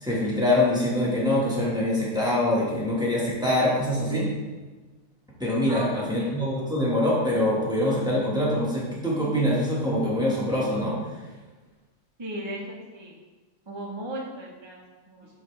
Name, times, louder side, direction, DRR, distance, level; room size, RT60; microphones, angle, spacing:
voice 1, 0.0-4.3 5.4-10.9, left 1 dB, 5° right, -6 dB, 1.1 m, -24 dB
voice 2, 5.7-6.3 12.2-13.2 13.7-15.4, right 1 dB, 35° right, -3 dB, 0.4 m, -37 dB
8.1 x 3.8 x 3.2 m, 1.3 s
omnidirectional pair, 2.1 m